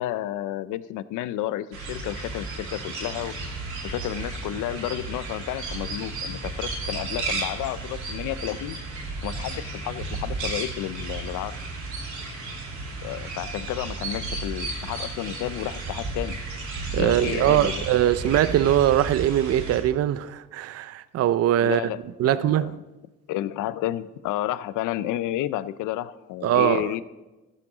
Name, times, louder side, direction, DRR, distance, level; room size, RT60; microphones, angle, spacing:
voice 1, 0.0-3.3 3.8-8.8 9.2-11.6 13.0-16.4 17.0-17.8 21.6-22.0 22.2-22.8 23.3-27.0, left 13 dB, 85° left, 0.5 m, -31 dB
sound 1, 1.7-19.8, right 3 dB, 75° right, 2.8 m, -33 dB
voice 2, 16.9-21.8 22.2-22.7 26.4-26.9, right 12 dB, 55° right, 0.5 m, -22 dB
14.5 x 7.4 x 3.9 m
cardioid pair, 90°, 30 cm